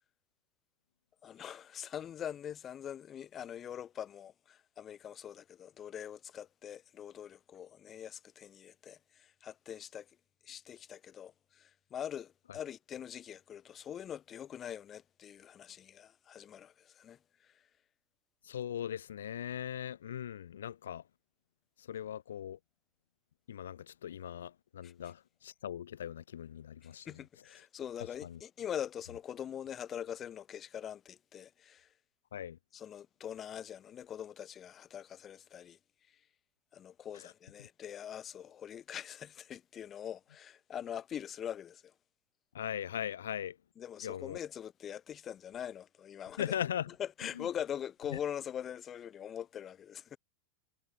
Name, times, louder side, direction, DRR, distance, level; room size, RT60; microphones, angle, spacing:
voice 1, 1.2-10.1 10.4-17.5 24.8-24.9 26.8-31.9 32.7-35.8 36.7-41.9 43.8-46.6 47.0-50.2, left 9 dB, 25° left, 3.5 m, -43 dB
voice 2, 18.4-21.0 21.8-22.6 23.5-27.1 28.2-28.4 32.3-32.6 42.5-43.6 44.0-44.4 46.4-46.9 47.4-47.5, left 10 dB, 65° left, 0.4 m, -39 dB
figure-of-eight pair, 90°, 0 cm